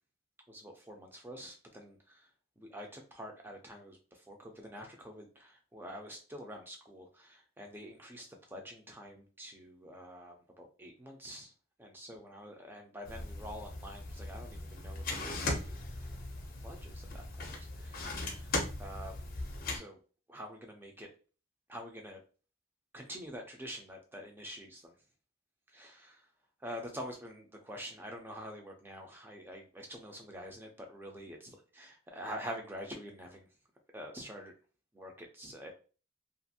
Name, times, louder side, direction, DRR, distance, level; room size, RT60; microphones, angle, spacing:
voice 1, 0.5-2.3 2.6-11.5 11.9-15.8 16.6-19.1 19.7-20.0 20.3-21.1 21.7-22.2 22.9-24.9 25.7-26.3 26.6-33.5 33.9-34.5 34.9-35.7, equal, 10° right, 2 dB, 0.5 m, -46 dB
sound 1, 13.1-19.8, left 2 dB, 45° left, 0.6 m, -39 dB
2.5 x 2.4 x 2.7 m, 0.36 s
head